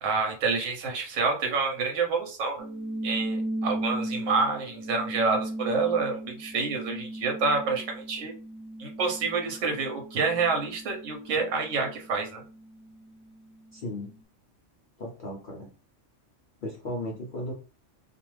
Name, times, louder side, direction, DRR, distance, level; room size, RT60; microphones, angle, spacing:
voice 1, 0.0-2.7 3.0-8.3 8.8-12.4, right 4 dB, 80° right, 3 dB, 1.1 m, -28 dB
sound 1, 2.6-13.5, right 1 dB, 20° right, 0.6 m, -37 dB
voice 2, 13.7-14.1 15.0-15.7 16.6-17.5, left 1 dB, 50° left, -3 dB, 0.7 m, -35 dB
2.4 x 2.4 x 3.1 m, 0.36 s
omnidirectional pair, 1.3 m